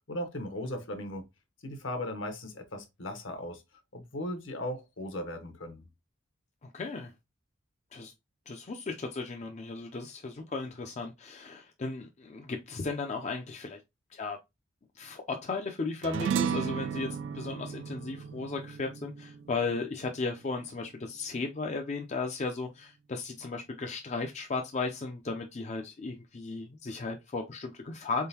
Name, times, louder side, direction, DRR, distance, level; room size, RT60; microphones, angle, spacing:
voice 1, 0.1-1.2 1.6-3.6 3.9-5.9, left 1 dB, 65° left, 1.0 m, -37 dB
voice 2, 6.6-7.1 7.9-8.1 8.5-13.8 14.1-14.4 14.9-28.3, left 3 dB, 35° left, 0.5 m, -35 dB
sound 1, 16.0-20.7, right 7 dB, 60° right, 0.3 m, -34 dB
4.1 x 3.7 x 2.8 m
head